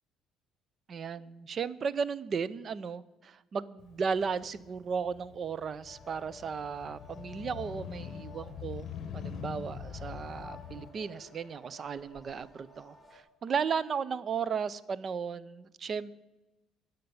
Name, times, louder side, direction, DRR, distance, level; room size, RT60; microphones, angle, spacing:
voice 1, 0.9-8.9 9.1-16.1, right 6 dB, 40° right, 19 dB, 0.5 m, -35 dB
Motorcycle, 3.8-10.9, left 7 dB, 55° left, 0.9 m, -44 dB
sound 1, 5.9-13.2, left 3 dB, 10° left, 3.2 m, -53 dB
11.0 x 6.7 x 9.4 m, 1.0 s
cardioid pair, 95°, 0 cm